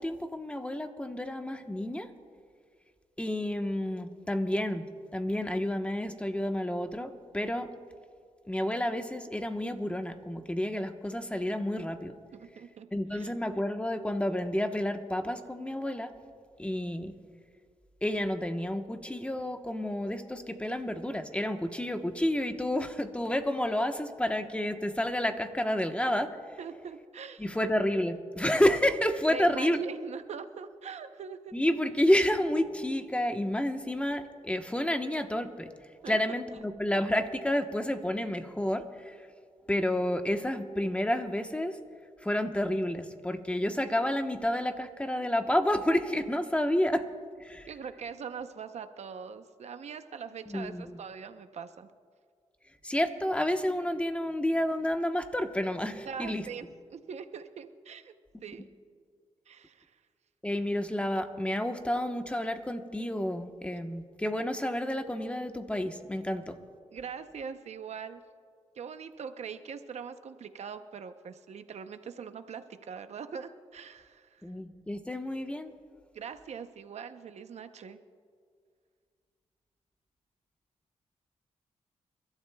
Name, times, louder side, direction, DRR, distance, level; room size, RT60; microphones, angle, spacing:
voice 1, 0.0-2.1 3.2-4.8 5.1-7.7 8.5-12.1 12.9-16.1 16.6-17.1 18.0-26.3 27.4-29.8 31.5-35.7 36.1-39.2 39.7-41.8 42.2-47.1 47.4-47.7 50.5-51.0 52.8-56.4 60.4-66.6 74.4-75.7, left 1 dB, 10° left, 6 dB, 1.1 m, -30 dB
voice 2, 12.3-13.3 26.6-27.6 29.3-31.5 36.0-36.2 36.5-36.6 47.7-51.9 56.1-58.1 58.4-58.7 59.5-60.0 66.9-68.2 68.7-74.4 76.1-78.0, right 6 dB, 65° right, 9 dB, 0.7 m, -42 dB
29.0 x 12.5 x 2.3 m, 2.1 s
cardioid pair, 75°, 12 cm